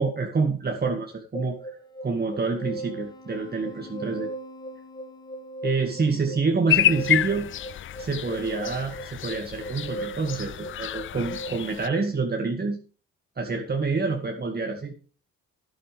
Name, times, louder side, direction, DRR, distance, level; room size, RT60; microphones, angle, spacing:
voice 1, 0.0-1.8 2.0-4.3 5.6-7.5 8.0-12.8 13.4-14.9, right 4 dB, 30° right, 3 dB, 1.9 m, -27 dB
sound 1, 1.3-11.5, right 2 dB, 15° left, 2.3 m, -38 dB
sound 2, 6.7-11.9, left 11 dB, 45° left, 0.4 m, -28 dB
12.0 x 10.5 x 3.5 m, 0.38 s
cardioid pair, 90°, 30 cm